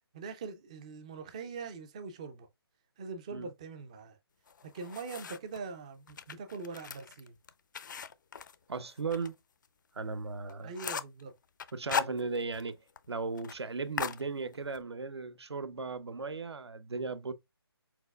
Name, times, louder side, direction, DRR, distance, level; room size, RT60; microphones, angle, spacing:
voice 1, 0.1-2.5 3.0-4.2 4.6-7.3 10.6-11.3, right 4 dB, 15° right, 0.3 m, -42 dB
sound 1, 4.5-5.6 6.1-9.3 9.6-9.7 10.1-10.2 10.5-11.2 11.6-12.7 13.0-13.1 13.4-13.6 14.0-14.8, left 7 dB, 45° left, 0.4 m, -38 dB
voice 2, 8.7-9.3 9.9-10.7 11.7-12.8 13.1-17.3, right 4 dB, 80° right, 0.7 m, -36 dB
4.7 x 3.9 x 2.2 m
figure-of-eight pair, 155°, 14 cm